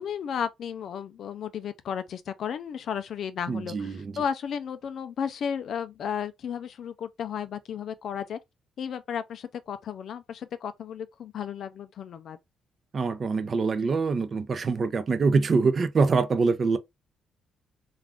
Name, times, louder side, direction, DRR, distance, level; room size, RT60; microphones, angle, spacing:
voice 1, 0.0-8.4 8.8-12.4, left 8 dB, 65° left, 0.4 m, -34 dB
voice 2, 3.5-4.1 12.9-16.8, right 4 dB, 45° right, 0.5 m, -24 dB
2.4 x 2.4 x 3.4 m
cardioid pair, 90°, 0 cm